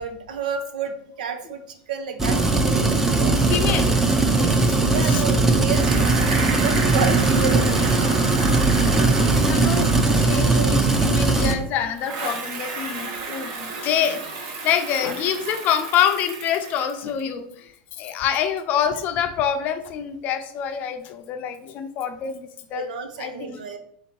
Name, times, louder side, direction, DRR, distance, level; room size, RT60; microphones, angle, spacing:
voice 1, 0.0-3.4 4.9-6.2 6.5-8.0 10.5-10.7 22.7-23.8, right 5 dB, 90° right, 6 dB, 0.7 m, -30 dB
sound 1, 2.2-11.5, right 3 dB, 10° right, 0.5 m, -19 dB
voice 2, 3.5-4.0 4.3-4.8 5.0-5.2 8.9-22.9 23.2-23.6, left 8 dB, 40° left, 8 dB, 0.5 m, -26 dB
Bicycle, 5.7-11.5 12.0-17.2, right 3 dB, 50° right, 0.9 m, -33 dB
3.7 x 2.8 x 4.4 m, 0.67 s
supercardioid pair, 135°, 4 cm